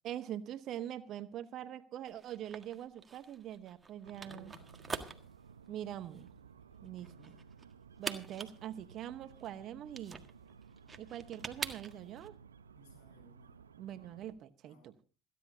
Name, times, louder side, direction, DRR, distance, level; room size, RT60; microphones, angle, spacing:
voice 1, 0.0-4.5 5.7-6.3 6.8-7.4 8.0-10.2 11.0-12.3 13.8-14.9, right 11 dB, 55° right, 1.0 m, -43 dB
sound 1, 2.1-12.3, right 4 dB, 25° right, 1.6 m, -45 dB
sound 2, 4.0-14.3, right 6 dB, 85° right, 0.9 m, -57 dB
voice 2, 4.3-5.3 6.8-7.5 12.7-13.6 14.6-14.9, left 2 dB, 75° left, 7.4 m, -61 dB
27.5 x 10.5 x 2.7 m
figure-of-eight pair, 60°, 0 cm